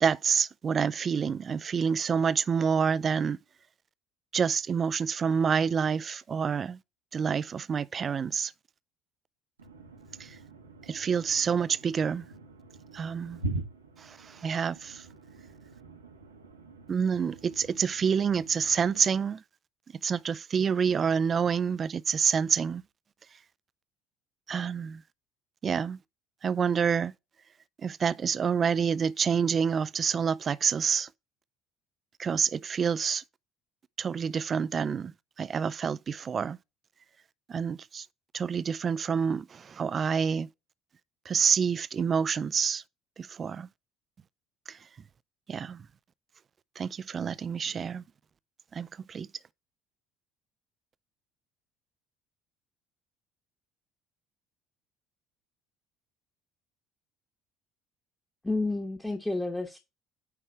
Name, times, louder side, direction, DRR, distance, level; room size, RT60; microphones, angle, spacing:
voice 1, 0.0-3.4 4.3-6.8 7.1-8.5 10.9-12.3 12.9-13.4 14.2-15.0 16.9-19.4 20.0-22.8 24.5-25.0 25.6-26.0 26.4-27.1 27.8-31.1 32.2-33.2 34.0-36.6 37.5-38.1 38.3-40.5 41.3-42.8 43.2-43.7 44.7-44.8 45.5-45.9 46.8-48.0 48.7-49.3, right 6 dB, 35° right, 0.4 m, -28 dB
voice 2, 9.6-19.2, right 2 dB, 85° right, 1.3 m, -43 dB
voice 3, 58.4-59.8, left 2 dB, 10° left, 1.3 m, -30 dB
9.3 x 3.3 x 4.4 m
figure-of-eight pair, 60°, 0 cm